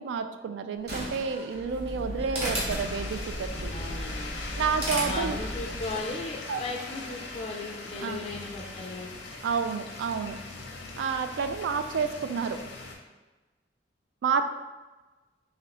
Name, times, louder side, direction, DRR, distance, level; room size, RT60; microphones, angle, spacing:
voice 1, 0.0-3.7 4.6-5.4 6.5-6.6 8.0-8.2 9.4-10.4 11.0-12.6 14.2-14.4, right 5 dB, 80° right, 9 dB, 0.3 m, -30 dB
Slam, 0.7-6.1, right 1 dB, 60° right, 0.9 m, -44 dB
sound 1, 1.5-6.0, equal, 35° right, 1.2 m, -34 dB
sound 2, 2.5-12.9, left 3 dB, 85° left, 0.6 m, -40 dB
voice 2, 3.7-4.3 5.0-9.1, left 2 dB, 35° left, 1 dB, 0.3 m, -37 dB
4.1 x 3.0 x 2.9 m, 1.2 s
head